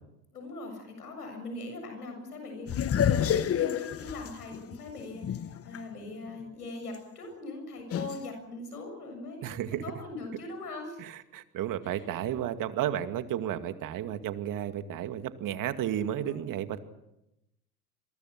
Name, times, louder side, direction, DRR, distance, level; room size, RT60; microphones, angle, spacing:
voice 1, 0.3-2.7 3.1-11.0 11.8-12.1 16.0-16.4, left 2 dB, 90° left, 5 dB, 7.4 m, -41 dB
sound 1, 2.7-5.8 6.2-6.3 7.9-8.2, left 9 dB, 30° left, 1.4 m, -28 dB
voice 2, 9.4-9.8 11.0-16.8, right 11 dB, 45° right, 9 dB, 2.3 m, -33 dB
28.0 x 23.0 x 6.1 m, 0.88 s
hypercardioid pair, 85°, 45 cm